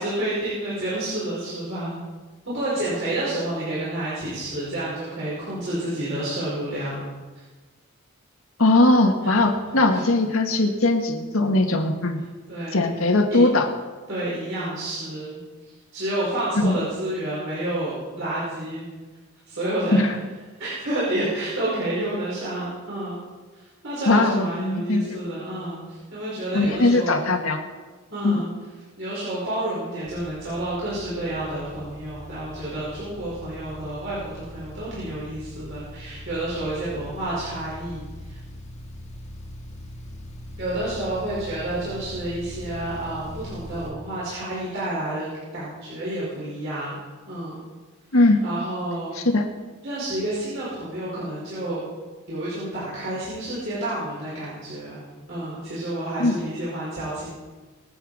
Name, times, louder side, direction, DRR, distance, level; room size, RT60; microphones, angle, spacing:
voice 1, 0.0-2.0 2.5-7.0 9.3-9.4 9.9-10.0 12.5-12.9 13.3-13.4 14.1-18.9 19.5-20.0 20.6-23.2 23.5-27.2 28.1-28.5 29.0-38.4 40.6-45.3 45.5-46.9 47.3-47.6 48.4-49.2 49.8-51.8 52.3-55.0 55.3-57.3, right 1 dB, 60° right, -9 dB, 5.6 m, -29 dB
voice 2, 8.6-12.2 12.7-13.7 16.6-16.7 19.9-20.1 24.1-25.0 26.5-27.6 28.2-28.4 48.1-48.4 49.2-49.4 56.2-56.3, left 2 dB, 75° left, 3 dB, 1.9 m, -20 dB
sound 1, 30.0-43.9, equal, 30° left, 1.9 m, -41 dB
24.0 x 8.2 x 5.0 m, 1.3 s
head